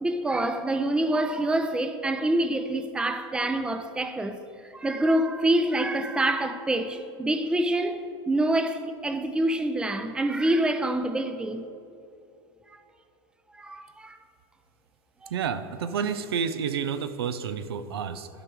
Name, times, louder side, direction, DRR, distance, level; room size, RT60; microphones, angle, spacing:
voice 1, 0.0-4.4 4.7-11.7 12.7-12.8 13.5-14.2 15.2-15.3, right 1 dB, 5° right, 0.5 m, -26 dB
voice 2, 15.3-18.3, right 7 dB, 85° right, 0.5 m, -30 dB
12.0 x 5.2 x 4.6 m
hypercardioid pair, 110°, 13 cm